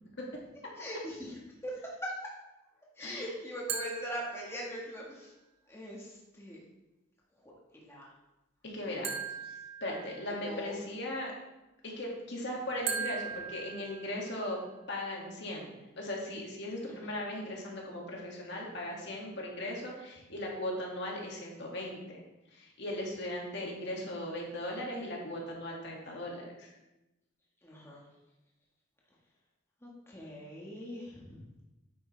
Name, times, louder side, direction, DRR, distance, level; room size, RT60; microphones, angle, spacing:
voice 1, 0.8-2.1 3.0-5.3 5.7-6.6 7.4-8.1 8.7-9.1 10.0-10.1 10.4-10.7 16.9-17.1 27.6-28.0 29.8-31.4, equal, 15° left, -4 dB, 1.5 m, -42 dB
sound 1, 3.7-5.0 9.0-10.6 12.9-14.6, right 6 dB, 60° right, 1.4 m, -39 dB
voice 2, 8.6-9.1 9.8-11.3 11.8-14.6 14.9-22.0 22.5-26.7, left 1 dB, 60° left, -2 dB, 2.2 m, -38 dB
9.1 x 8.5 x 3.3 m, 1.0 s
head